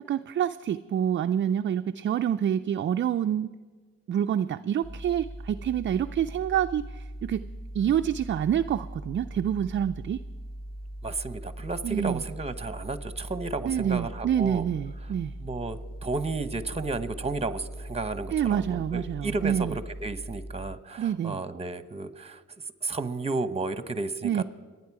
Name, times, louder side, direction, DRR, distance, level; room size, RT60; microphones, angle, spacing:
voice 1, 0.1-3.5 4.1-7.4 7.7-10.2 11.8-12.2 13.6-15.3 18.3-19.8 21.0-21.4 24.2-24.4, right 9 dB, 40° right, 8 dB, 0.4 m, -27 dB
sound 1, 4.8-20.8, right 1 dB, 30° left, 1.5 m, -40 dB
voice 2, 11.0-14.6 15.4-22.4 22.8-24.4, right 3 dB, 20° right, 12 dB, 1.0 m, -33 dB
28.0 x 9.7 x 4.8 m, 1.4 s
cardioid pair, 90°, 30 cm